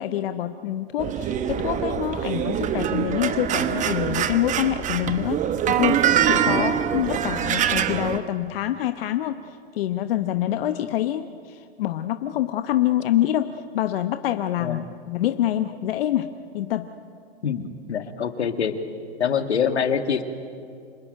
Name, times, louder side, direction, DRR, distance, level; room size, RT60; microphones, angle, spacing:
voice 1, 0.0-5.4 5.7-9.4 9.7-16.9, left 12 dB, 60° left, 8 dB, 1.0 m, -26 dB
sound 1, 1.0-8.2, right 9 dB, 25° right, 1.1 m, -24 dB
voice 2, 17.4-18.7 19.2-20.2, left 7 dB, 85° left, 7 dB, 2.0 m, -25 dB
26.5 x 19.5 x 9.2 m, 2.3 s
hypercardioid pair, 120°, 32 cm